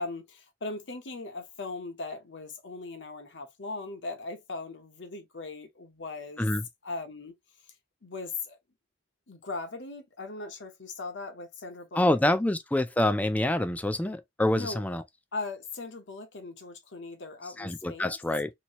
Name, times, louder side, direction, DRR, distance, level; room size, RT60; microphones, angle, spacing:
voice 1, 0.0-6.5 6.8-7.3 8.0-8.6 9.3-12.2 14.5-14.8 15.3-18.2, left 3 dB, 75° left, 0.9 m, -39 dB
voice 2, 11.9-15.0 17.6-18.5, left 1 dB, 10° left, 0.4 m, -26 dB
3.0 x 2.6 x 2.9 m
head